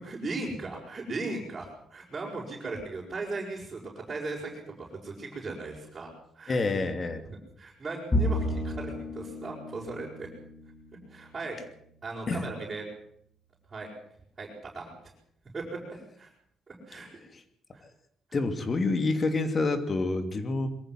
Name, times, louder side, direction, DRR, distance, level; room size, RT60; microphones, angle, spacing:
voice 1, 0.0-6.1 6.3-6.6 7.3-10.3 11.1-11.6 12.0-12.8 13.7-13.9 14.4-14.9 15.5-16.3 16.7-17.1 17.7-17.8, right 3 dB, 30° right, -5 dB, 6.3 m, -37 dB
voice 2, 6.5-7.3 12.3-12.5 16.9-17.0 18.3-20.7, left 3 dB, 40° left, 9 dB, 2.7 m, -28 dB
Bowed string instrument, 8.1-11.6, left 1 dB, 25° left, 3.5 m, -32 dB
23.0 x 15.0 x 7.8 m, 0.70 s
cardioid pair, 90°, 0 cm